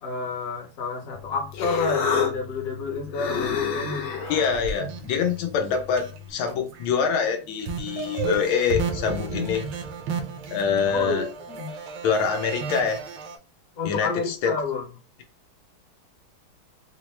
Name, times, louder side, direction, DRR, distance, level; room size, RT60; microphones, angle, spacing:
voice 1, 0.0-4.1 10.9-11.7 13.8-14.9, left 4 dB, 50° left, 1.2 m, -29 dB
Human voice, 1.1-6.3, left 5 dB, 70° left, 0.9 m, -31 dB
voice 2, 4.3-9.6 10.5-11.3 12.0-13.0 13.8-14.5, left 6 dB, 85° left, 1.6 m, -25 dB
sound 1, 4.3-6.2 6.5-6.9 7.2-13.4, right 5 dB, 80° right, 1.5 m, -33 dB
4.4 x 2.1 x 3.0 m
omnidirectional pair, 2.3 m